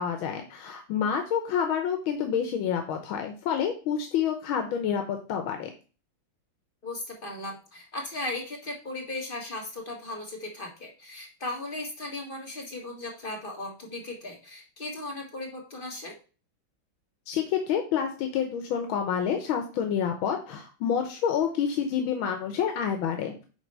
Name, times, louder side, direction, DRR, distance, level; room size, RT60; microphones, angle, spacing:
voice 1, 0.0-5.7 17.3-23.5, left 8 dB, 90° left, 5 dB, 1.7 m, -28 dB
voice 2, 6.8-16.1, left 2 dB, 25° left, 0 dB, 1.6 m, -37 dB
8.9 x 3.4 x 5.3 m, 0.35 s
omnidirectional pair, 2.2 m